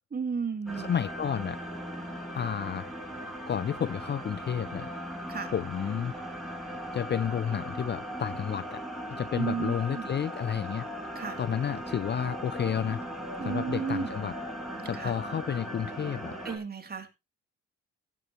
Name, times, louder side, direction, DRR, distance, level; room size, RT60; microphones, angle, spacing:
voice 1, 0.1-0.9 5.3-5.5 9.3-10.1 11.1-11.4 13.4-14.1 14.9-15.2 16.4-17.1, right 5 dB, 30° right, 2.7 m, -33 dB
sound 1, 0.7-16.6, equal, ahead, 5.1 m, -38 dB
voice 2, 0.8-1.6 2.3-2.9 3.5-4.9 5.5-6.2 6.9-8.8 9.1-10.9 11.4-13.0 13.4-14.3 14.9-16.4, left 8 dB, 35° left, 0.5 m, -31 dB
16.0 x 8.5 x 3.0 m
cardioid pair, 90°, 30 cm